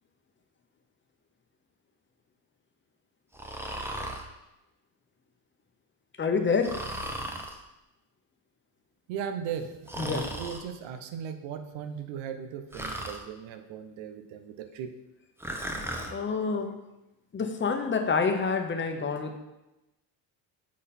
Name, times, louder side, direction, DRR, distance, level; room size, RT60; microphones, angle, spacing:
Breathing, 3.3-4.3 6.6-7.6 9.9-10.6 12.7-13.2 15.4-16.1, right 1 dB, 5° right, 0.7 m, -36 dB
voice 1, 6.2-6.7 10.0-10.2 16.1-16.8 17.3-19.4, left 5 dB, 25° left, 5 dB, 0.9 m, -27 dB
voice 2, 9.1-14.9, right 8 dB, 85° right, 8 dB, 0.8 m, -37 dB
7.5 x 4.1 x 4.2 m, 0.97 s
cardioid pair, 100°, 46 cm